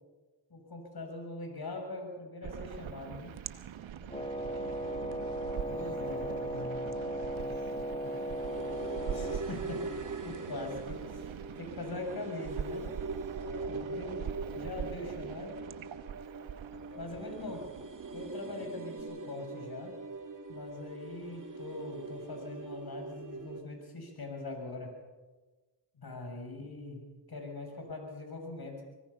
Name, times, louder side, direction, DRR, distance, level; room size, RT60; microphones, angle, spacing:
voice 1, 0.5-3.4 5.7-6.3 9.1-9.9 10.2-11.3 11.6-12.9 13.7-14.2 14.5-15.6 17.0-17.6 18.1-20.0 20.5-24.9 26.0-28.8, left 2 dB, 50° left, 3 dB, 7.2 m, -42 dB
sound 1, 2.4-19.0, right 9 dB, 70° right, 1.1 m, -43 dB
voice 2, 4.0-4.7 5.6-8.4 12.1-12.3 13.4-13.8 16.7-17.6 18.4-18.7 25.9-26.5, left 3 dB, 70° left, -1 dB, 4.9 m, -50 dB
Wind instrument woodwind instrument, 4.1-9.5, right 1 dB, 15° left, 1.4 m, -36 dB
sound 2, 4.3-23.6, right 3 dB, 40° right, 2.7 m, -43 dB
25.0 x 18.5 x 5.7 m, 1.3 s
cardioid pair, 50°, 48 cm